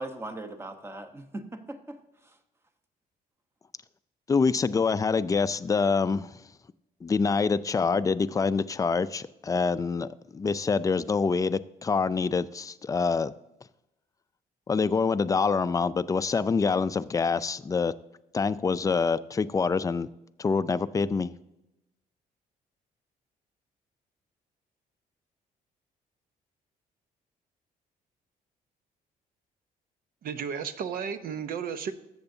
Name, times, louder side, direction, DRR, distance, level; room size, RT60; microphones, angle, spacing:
voice 1, 0.0-2.4, right 2 dB, 15° right, 1.0 m, -40 dB
voice 2, 4.3-6.3 7.0-13.3 14.7-17.9 18.3-20.1 20.4-21.3, left 5 dB, 20° left, 0.4 m, -26 dB
voice 3, 30.2-31.9, right 7 dB, 70° right, 0.8 m, -33 dB
13.5 x 8.0 x 2.7 m
cardioid pair, 100°, 16 cm